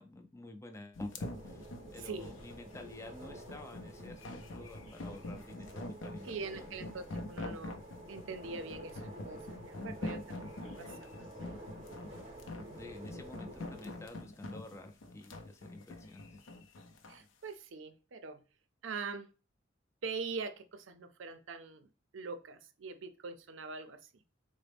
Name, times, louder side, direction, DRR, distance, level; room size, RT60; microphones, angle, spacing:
voice 1, 0.0-6.7 12.8-16.4, left 2 dB, 15° left, 4 dB, 0.3 m, -50 dB
sound 1, 1.0-17.2, left 2 dB, 75° left, 0.5 m, -45 dB
sound 2, 1.2-14.1, right 1 dB, 30° right, 0.7 m, -50 dB
voice 2, 2.0-2.3 6.2-11.0 11.7-11.8 17.1-18.4 18.8-19.3 20.0-24.0, right 4 dB, 75° right, 9 dB, 0.5 m, -43 dB
3.8 x 2.1 x 3.3 m, 0.34 s
head